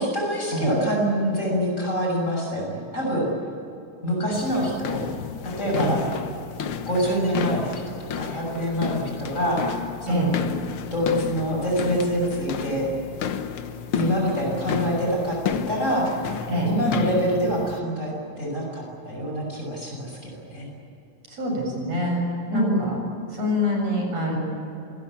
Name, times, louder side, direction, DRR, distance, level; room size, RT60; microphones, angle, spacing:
voice 1, 0.0-3.3 4.0-5.0 5.4-6.0 6.9-9.6 10.0-10.3 10.9-12.9 13.9-16.1 16.7-20.7 22.5-22.9, equal, 25° left, -2 dB, 7.1 m, -25 dB
sound 1, 4.3-17.8, left 7 dB, 60° left, 1.6 m, -32 dB
voice 2, 21.3-22.2 22.5-23.0 23.3-24.4, left 1 dB, 60° right, 0 dB, 8.7 m, -25 dB
27.0 x 21.0 x 8.7 m, 3.0 s
omnidirectional pair, 3.4 m